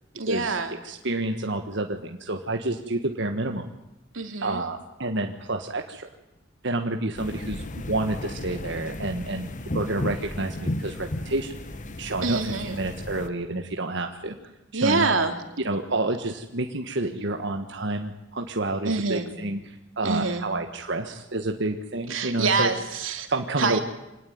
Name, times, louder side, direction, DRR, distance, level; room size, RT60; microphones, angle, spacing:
voice 1, 0.1-0.7 4.1-4.6 12.2-12.8 14.3-14.4 14.7-15.4 18.8-19.3 20.0-20.4 22.1-23.3 23.6-23.8, right 4 dB, 90° right, 6 dB, 3.1 m, -26 dB
voice 2, 0.8-3.7 4.4-6.1 6.6-9.5 9.7-11.5 12.0-14.4 14.7-15.1 15.6-22.7 23.3-23.8, right 2 dB, 65° right, 4 dB, 1.6 m, -29 dB
sound 1, 7.2-13.3, left 1 dB, 40° left, 1.2 m, -34 dB
26.0 x 19.0 x 9.5 m, 0.96 s
head